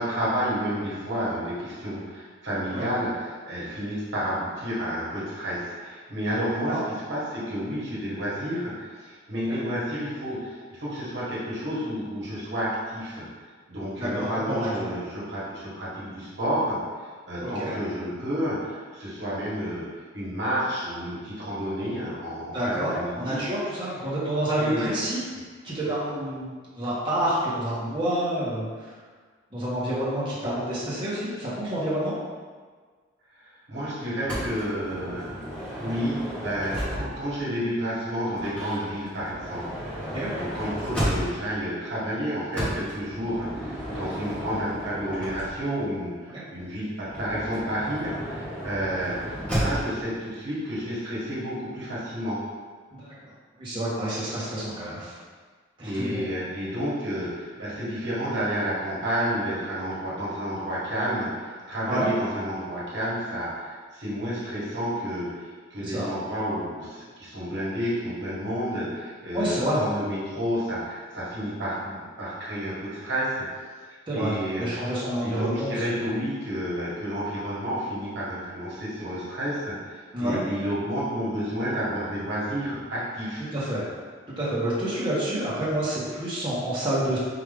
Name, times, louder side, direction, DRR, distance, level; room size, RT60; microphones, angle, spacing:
voice 1, 0.0-13.2 13.7-19.8 20.1-23.4 24.6-25.0 33.4-35.3 35.8-52.4 55.8-65.4 65.7-73.4 74.1-74.7 75.2-79.7 80.2-83.5, equal, 60° right, -8 dB, 1.4 m, -30 dB
voice 2, 14.0-14.9 17.4-17.7 22.5-25.2 25.6-28.9 29.5-32.1 40.1-40.3 43.9-44.0 46.3-46.4 53.0-53.1 53.6-55.2 55.8-56.3 61.9-62.1 65.8-66.1 69.3-69.8 74.1-74.3 74.6-76.1 80.1-80.4 83.5-83.9 84.4-87.2, right 1 dB, 25° right, -8 dB, 1.1 m, -28 dB
Motor vehicle (road) / Sliding door, 34.3-37.4 38.3-41.6 42.5-45.8 47.1-50.0, equal, 5° left, 1.0 m, -33 dB
4.8 x 2.7 x 3.5 m, 1.5 s
head